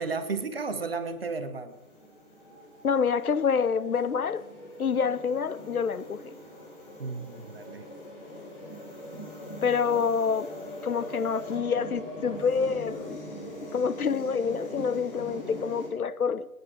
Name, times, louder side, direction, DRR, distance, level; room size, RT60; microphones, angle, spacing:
voice 1, 0.0-1.7 7.0-7.9, right 4 dB, 40° right, 1.1 m, -33 dB
sound 1, 1.7-15.9, left 1 dB, 40° left, 4.1 m, -42 dB
voice 2, 2.8-4.5 4.8-6.3 9.6-10.5 10.8-13.2 13.7-16.5, left 6 dB, 80° left, 0.7 m, -27 dB
16.0 x 9.8 x 4.9 m
figure-of-eight pair, 155°, 44 cm